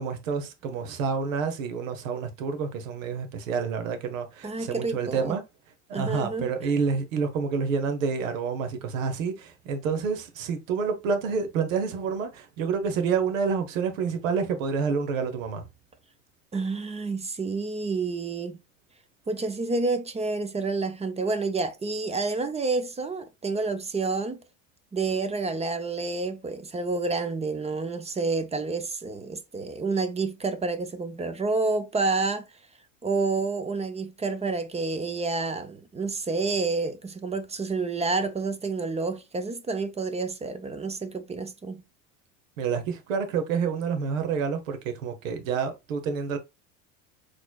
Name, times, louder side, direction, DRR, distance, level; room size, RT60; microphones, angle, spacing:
voice 1, 0.0-5.4 5.9-15.7 42.6-46.4, right 5 dB, 90° right, 1.0 m, -28 dB
voice 2, 4.4-5.4 5.9-6.5 16.5-18.6 19.3-24.4 24.9-32.4 33.0-41.8, right 3 dB, 15° right, 0.5 m, -29 dB
4.1 x 3.1 x 2.3 m
supercardioid pair, 95°, 38 cm